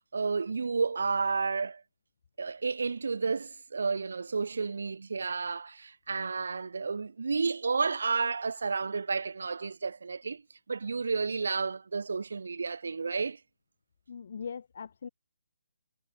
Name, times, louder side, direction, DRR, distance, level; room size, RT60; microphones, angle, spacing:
voice 1, 0.1-1.8 2.4-10.4 10.7-13.4, right 4 dB, 70° right, 1.9 m, -31 dB
voice 2, 14.1-15.1, left 6 dB, 40° left, 2.7 m, -40 dB
hypercardioid pair, 180°, 0 cm